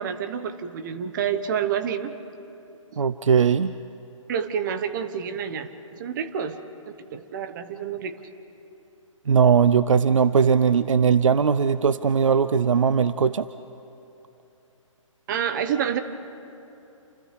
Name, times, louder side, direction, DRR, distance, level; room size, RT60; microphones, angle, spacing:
voice 1, 0.0-2.2 4.3-6.6 6.9-8.1 15.3-16.0, right 8 dB, 35° right, 10 dB, 1.1 m, -28 dB
voice 2, 3.0-3.7 9.3-13.5, right 6 dB, 70° right, 14 dB, 0.6 m, -19 dB
29.0 x 28.5 x 3.4 m, 2.9 s
figure-of-eight pair, 135°, 17 cm